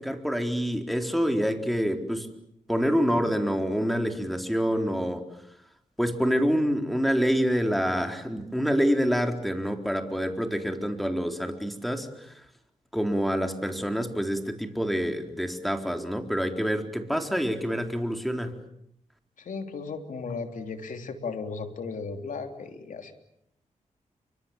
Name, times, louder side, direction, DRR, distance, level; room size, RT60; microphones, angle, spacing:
voice 1, 0.0-2.3 2.7-5.3 6.0-12.5 12.9-18.6, equal, ahead, 5 dB, 4.2 m, -27 dB
voice 2, 19.4-23.1, left 4 dB, 80° left, 6 dB, 3.2 m, -35 dB
29.5 x 25.0 x 7.5 m, 0.76 s
cardioid pair, 65°, 13 cm